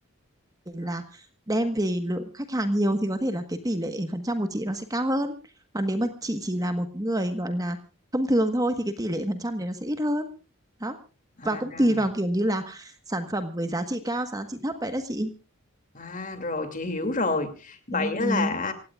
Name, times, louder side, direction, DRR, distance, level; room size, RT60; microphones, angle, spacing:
voice 1, 0.7-5.4 5.7-7.8 8.1-10.3 10.8-11.0 11.4-15.3 17.9-18.6, right 1 dB, 15° right, 8 dB, 1.3 m, -27 dB
voice 2, 11.4-11.9 15.9-18.7, left 3 dB, 40° left, 8 dB, 2.6 m, -29 dB
27.0 x 16.5 x 2.4 m, 0.34 s
head